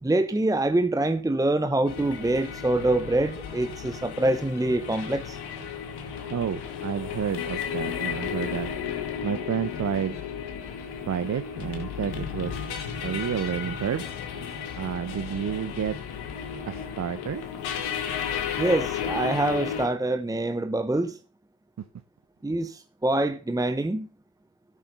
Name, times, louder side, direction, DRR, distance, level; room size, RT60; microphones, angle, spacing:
voice 1, 0.0-5.4 18.6-21.2 22.4-24.1, right 2 dB, 10° right, 0.9 m, -25 dB
sound 1, 1.9-19.9, left 7 dB, 85° left, 2.5 m, -34 dB
voice 2, 6.3-8.7 9.2-10.2 11.1-12.6 13.0-14.0 14.8-16.0 16.7-17.4 21.8-21.9, right 8 dB, 45° right, 0.9 m, -30 dB
12.5 x 7.2 x 5.4 m
supercardioid pair, 70°, 38 cm